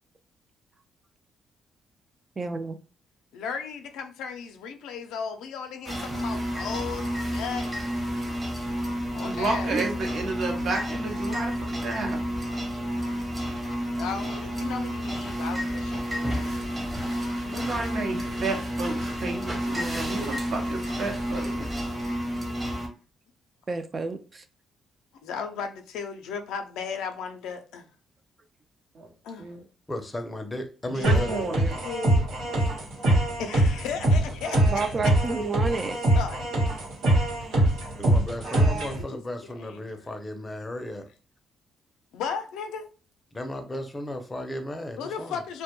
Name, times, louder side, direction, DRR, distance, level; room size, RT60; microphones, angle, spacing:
voice 1, 2.4-2.8 9.7-9.8 23.7-24.2 34.7-36.0, right 3 dB, 35° right, 0.3 m, -29 dB
voice 2, 3.3-7.7 9.1-9.7 14.0-16.5 25.2-27.8 29.2-29.5 30.9-31.4 31.7-32.3 33.4-35.2 35.7-36.5 38.9-40.1 42.1-42.9 45.0-45.6, left 6 dB, 90° left, 0.4 m, -35 dB
sound 1, 5.9-22.9, equal, 15° right, 0.8 m, -30 dB
voice 3, 9.2-12.2 17.5-21.9 28.9-29.1 29.4-29.6 30.9-31.8, right 3 dB, 60° right, 0.8 m, -32 dB
voice 4, 29.9-31.4 38.0-41.1 43.3-45.4, left 1 dB, 20° left, 0.5 m, -35 dB
sound 2, 31.0-39.0, right 1 dB, 85° right, 1.1 m, -23 dB
2.1 x 2.1 x 2.9 m
cardioid pair, 90°, 0 cm